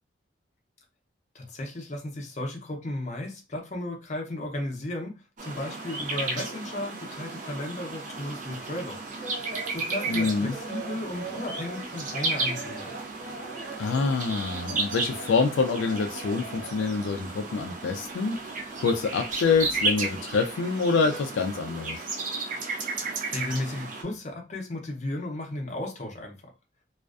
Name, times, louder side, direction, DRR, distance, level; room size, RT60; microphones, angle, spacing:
voice 1, 1.3-9.0 9.7-12.9 23.3-26.4, left 1 dB, 40° left, 1 dB, 0.6 m, -34 dB
sound 1, 5.4-24.0, right 3 dB, 45° right, 0.5 m, -34 dB
sound 2, 8.4-17.1 17.4-18.6 18.9-20.2 20.5-21.2, right 3 dB, ahead, 0.7 m, -42 dB
voice 2, 10.1-10.5 13.8-18.4 18.8-22.0, left 4 dB, 80° left, 5 dB, 0.3 m, -26 dB
2.4 x 2.2 x 2.4 m, 0.28 s
head